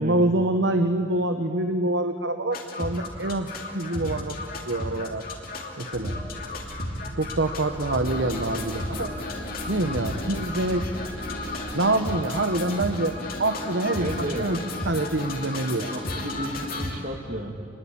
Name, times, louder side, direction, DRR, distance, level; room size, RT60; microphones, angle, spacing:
voice 1, 0.0-4.4 4.7-5.2 5.8-6.2 7.2-9.1 9.7-10.8 11.7-14.1 14.4-14.6 14.8-15.9, right 2 dB, 70° right, 7 dB, 1.1 m, -26 dB
sound 1, 2.5-17.0, left 2 dB, 50° left, 3.0 m, -33 dB
sound 2, 5.9-11.7, equal, 10° right, 4.3 m, -39 dB
voice 2, 14.0-14.5 15.9-17.5, right 1 dB, 45° right, 4 dB, 2.5 m, -33 dB
28.5 x 21.5 x 8.7 m, 2.3 s
head